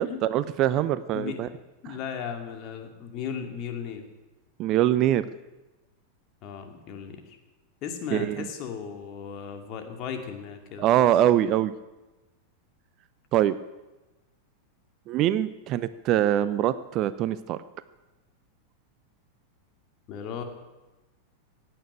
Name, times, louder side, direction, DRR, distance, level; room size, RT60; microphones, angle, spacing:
voice 1, 0.0-1.5 4.6-5.2 8.1-8.5 10.8-11.7 13.3-13.6 15.1-17.6, right 12 dB, 35° right, 15 dB, 0.6 m, -23 dB
voice 2, 1.1-1.5 1.8-4.0 6.4-7.4 7.8-11.0 20.1-20.4, left 7 dB, 40° left, 5 dB, 2.4 m, -36 dB
16.5 x 8.9 x 8.8 m, 1.1 s
figure-of-eight pair, 90°, 0 cm